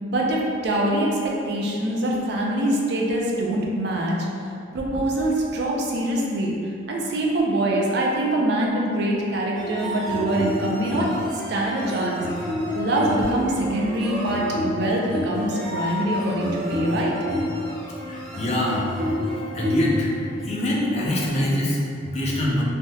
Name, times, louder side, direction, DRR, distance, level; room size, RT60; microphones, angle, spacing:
voice 1, 0.0-4.5 4.7-6.6 6.9-11.1 11.5-12.2 12.7-17.1, right 1 dB, 60° right, -2 dB, 0.4 m, -24 dB
sound 1, 9.5-21.4, left 1 dB, ahead, 0.8 m, -29 dB
voice 2, 18.1-18.8 19.5-20.1 20.4-22.6, left 1 dB, 35° left, -4 dB, 0.4 m, -24 dB
3.4 x 2.7 x 2.2 m, 2.5 s
head